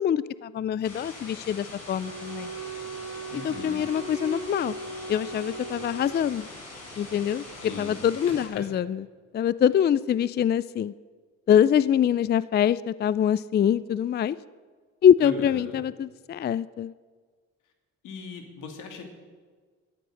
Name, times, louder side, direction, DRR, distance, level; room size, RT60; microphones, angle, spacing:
voice 1, 0.0-2.5 3.4-4.8 5.1-6.5 7.0-9.0 9.3-10.9 11.5-14.4 15.0-16.9, left 9 dB, 35° left, 18 dB, 0.4 m, -24 dB
sound 1, 0.8-8.5, left 2 dB, 55° left, 5.8 m, -43 dB
Wind instrument woodwind instrument, 2.0-6.5, right 3 dB, 40° right, 2.9 m, -38 dB
voice 2, 3.3-3.8 7.6-8.0 8.5-8.6 15.2-15.8 18.0-19.0, left 4 dB, 85° left, 4 dB, 2.5 m, -39 dB
13.5 x 11.5 x 6.5 m, 1.5 s
cardioid pair, 90°, 30 cm